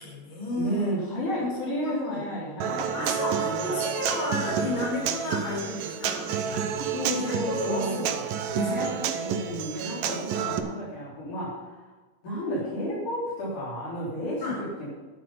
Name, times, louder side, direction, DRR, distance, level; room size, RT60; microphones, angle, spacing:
voice 1, 0.0-0.9 1.4-1.6 1.8-2.2 2.9-8.1 8.5-9.0 14.4-14.6, left 2 dB, 40° left, -3 dB, 5.3 m, -32 dB
voice 2, 0.6-3.9 6.9-8.3 8.6-11.9 12.2-14.9, equal, 70° left, -7 dB, 5.1 m, -32 dB
Human voice / Acoustic guitar, 2.6-10.6, right 8 dB, 85° right, 2.5 m, -30 dB
12.5 x 9.9 x 5.5 m, 1.3 s
omnidirectional pair, 3.7 m